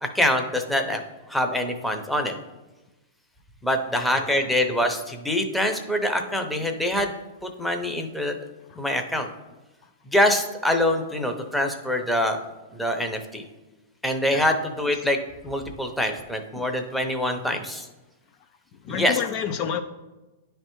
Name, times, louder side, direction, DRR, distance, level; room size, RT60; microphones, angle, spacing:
voice 1, 0.1-1.0 1.3-2.3 3.6-7.1 7.4-8.3 8.8-9.3 10.1-12.4 12.7-13.4 14.0-15.2 15.4-17.9 18.9-19.2, left 1 dB, 5° left, 0.7 m, -24 dB
voice 2, 18.8-19.8, left 8 dB, 45° left, 0.4 m, -29 dB
9.8 x 3.3 x 3.1 m
hypercardioid pair, 120°, 0 cm